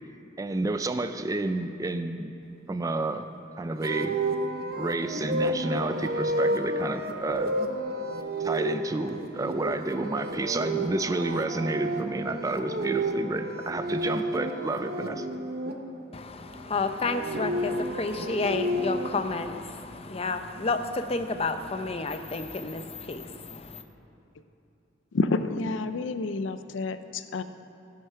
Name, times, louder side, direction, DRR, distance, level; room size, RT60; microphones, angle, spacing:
voice 1, 0.4-2.3 2.7-3.3 3.6-4.2 4.7-7.5 8.4-15.3, right 2 dB, 20° right, 10 dB, 0.3 m, -30 dB
sound 1, 3.8-15.7 16.9-19.1, right 1 dB, 55° right, 0.9 m, -31 dB
voice 2, 16.1-23.8, left 3 dB, 30° left, 8 dB, 0.6 m, -31 dB
voice 3, 25.1-27.4, left 3 dB, 90° left, 11 dB, 0.5 m, -29 dB
15.5 x 6.7 x 5.7 m, 2.9 s
head